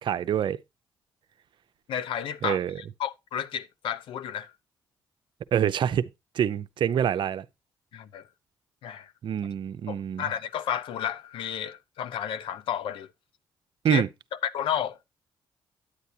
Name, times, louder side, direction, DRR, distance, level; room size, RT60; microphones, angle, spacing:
voice 1, 0.0-0.6 2.4-2.7 5.5-6.1 6.3-7.4 9.2-10.2 13.8-14.1, right 9 dB, 65° right, 0.6 m, -26 dB
voice 2, 1.9-4.5 7.9-8.2 8.8-9.1 9.9-13.1 13.9-14.0 14.4-15.0, left 9 dB, 80° left, 0.7 m, -32 dB
9.8 x 8.3 x 2.8 m
supercardioid pair, 60°, 9 cm